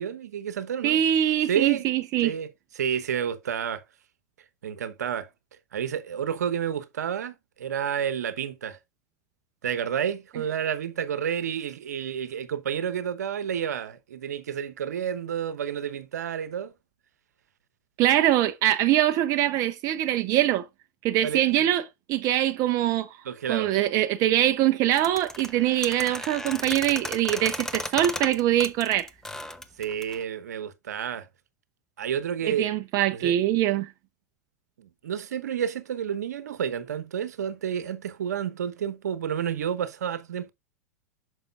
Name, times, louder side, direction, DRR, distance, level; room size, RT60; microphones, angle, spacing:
voice 1, 0.0-1.0 1.5-1.8 2.2-3.8 4.6-5.3 5.7-8.8 9.6-16.7 21.2-21.7 23.2-23.7 29.8-31.3 32.0-32.7 33.1-33.4 34.8-40.5, right 8 dB, 70° right, 1.0 m, -30 dB
voice 2, 0.8-2.3 18.0-20.6 21.0-21.8 22.1-23.2 23.5-29.1 32.4-33.9, right 12 dB, 40° right, 0.6 m, -23 dB
sound 1, 25.0-30.2, left 1 dB, 5° left, 0.8 m, -35 dB
8.9 x 6.4 x 2.4 m
hypercardioid pair, 95°, 9 cm